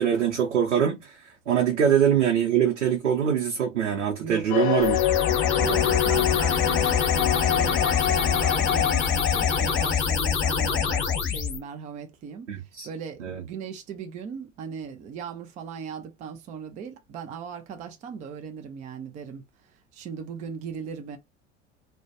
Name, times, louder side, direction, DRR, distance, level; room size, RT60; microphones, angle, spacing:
voice 1, 0.0-5.0 12.5-12.9 13.2-13.4, right 9 dB, 75° right, 0.7 m, -23 dB
voice 2, 4.2-4.6 5.6-21.2, right 7 dB, 20° right, 0.4 m, -38 dB
sound 1, 4.5-10.0, left 12 dB, 50° left, 0.4 m, -26 dB
sound 2, 4.8-11.6, left 6 dB, 30° left, 0.8 m, -25 dB
2.2 x 2.1 x 2.6 m
figure-of-eight pair, 80°, 37 cm